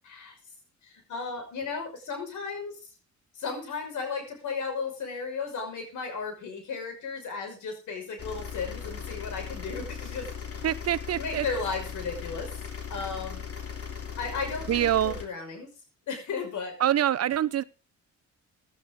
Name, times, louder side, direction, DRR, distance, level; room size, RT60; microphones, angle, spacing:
voice 1, 0.0-0.4 0.8-2.8 3.3-10.7 11.2-12.5 12.9-13.4 14.2-15.7 16.1-16.8, left 4 dB, 75° left, 5.7 m, -35 dB
sound 1, 8.2-15.2, left 7 dB, 50° left, 3.3 m, -38 dB
voice 2, 10.6-11.4 14.7-15.2 16.8-17.6, right 11 dB, 55° right, 0.7 m, -25 dB
16.5 x 11.0 x 3.8 m
cardioid pair, 90°, 30 cm